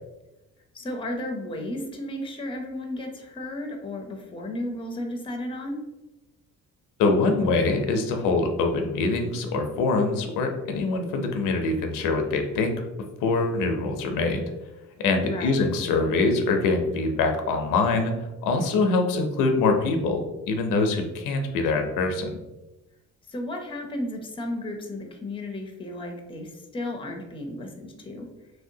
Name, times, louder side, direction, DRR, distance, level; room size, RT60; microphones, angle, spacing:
voice 1, 0.7-5.8 15.2-15.6 23.3-28.3, left 1 dB, 15° left, 2 dB, 0.5 m, -34 dB
voice 2, 7.0-12.8 13.2-14.4 15.0-22.3, left 3 dB, 85° left, 5 dB, 0.6 m, -24 dB
3.2 x 2.8 x 2.6 m, 1.0 s
cardioid pair, 105°, 31 cm